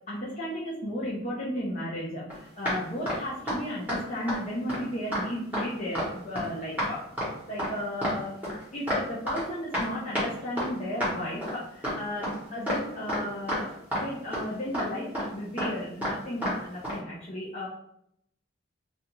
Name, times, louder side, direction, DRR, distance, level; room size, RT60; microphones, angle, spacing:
voice 1, 0.1-13.7 14.0-17.7, left 1 dB, 35° left, -7 dB, 0.5 m, -34 dB
sound 1, 2.3-2.4 2.7-2.8 3.1-3.2 3.5-3.6 3.9-4.0 4.3-4.4 4.7-4.8 5.1-5.3 5.5-5.6 5.9-6.1 6.4-6.5 6.8-6.9 7.2-7.3 7.6-7.7 8.0-8.2 8.4-9.0 9.3-9.4 9.7-9.9 10.2-10.3 10.6-10.7 11.0-11.1 11.4-11.5 11.8-12.0 12.2-12.4 12.7-12.8 13.1-13.2 13.5-13.6 13.9-14.1 14.3-14.5 14.7-14.9 15.1-15.3 15.6-15.7 16.0-16.1 16.4-16.6 16.8-17.0, equal, 5° right, 0.9 m, -29 dB
2.4 x 2.3 x 2.9 m, 0.74 s
head